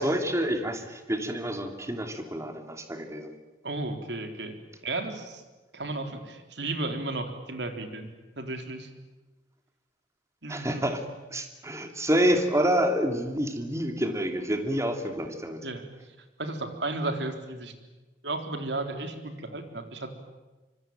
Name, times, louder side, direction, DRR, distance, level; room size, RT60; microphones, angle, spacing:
voice 1, 0.0-3.3 10.5-11.0 11.3-15.6, equal, 15° right, 6 dB, 2.9 m, -28 dB
voice 2, 3.6-4.5 4.8-5.4 5.7-8.1 8.4-8.9 10.4-10.9 15.6-15.8 16.4-17.7 18.2-20.1, right 2 dB, 75° right, 6 dB, 3.8 m, -34 dB
25.0 x 24.5 x 9.1 m, 1.2 s
head